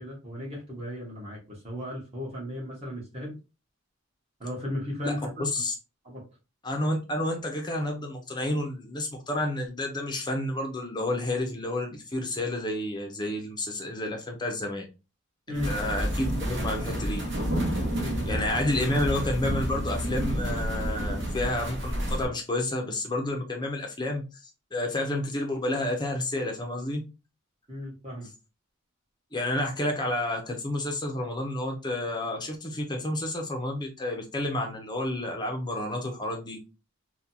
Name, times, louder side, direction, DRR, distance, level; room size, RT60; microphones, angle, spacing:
voice 1, 0.0-3.3 4.4-5.5 6.0-6.2 15.5-15.8 18.0-18.2 27.7-28.3, left 1 dB, 30° right, 1.4 m, -35 dB
voice 2, 5.0-5.7 6.6-14.9 15.7-17.2 18.3-24.2 24.7-27.0 29.3-36.6, left 1 dB, 20° left, 0.7 m, -30 dB
It started to rain, 15.5-22.3, equal, 55° right, 1.0 m, -30 dB
3.7 x 2.4 x 2.8 m
head